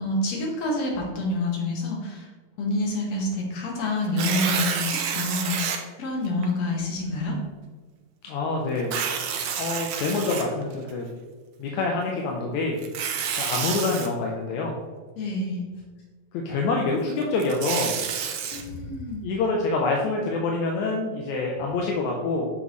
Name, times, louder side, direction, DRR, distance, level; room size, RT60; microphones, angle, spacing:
voice 1, 0.0-2.3 2.6-7.4 15.2-15.7 18.4-19.3, left 2 dB, 65° left, -1 dB, 2.8 m, -28 dB
Tearing, 4.0-5.8 6.4-6.5 8.8-10.9 12.8-14.1 17.2-18.6, right 7 dB, 90° right, 2.2 m, -29 dB
voice 2, 8.2-8.9 9.6-11.1 11.6-12.8 13.4-14.7 16.3-18.0 19.2-22.5, left 3 dB, 80° left, -1 dB, 2.2 m, -26 dB
9.1 x 6.2 x 3.1 m, 1.4 s
omnidirectional pair, 3.3 m